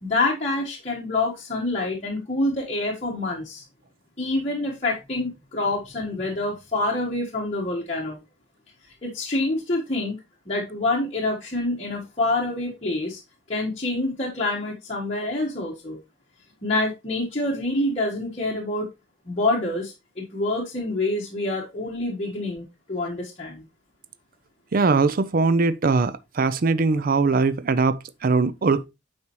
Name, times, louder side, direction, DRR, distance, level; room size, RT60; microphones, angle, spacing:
voice 1, 0.0-3.6 4.2-8.2 9.0-10.2 10.5-13.2 13.5-16.0 16.6-18.9 19.3-23.6, left 2 dB, 35° left, 1.4 m, -26 dB
voice 2, 24.7-28.8, right 4 dB, 50° right, 0.5 m, -21 dB
9.5 x 4.4 x 3.0 m
head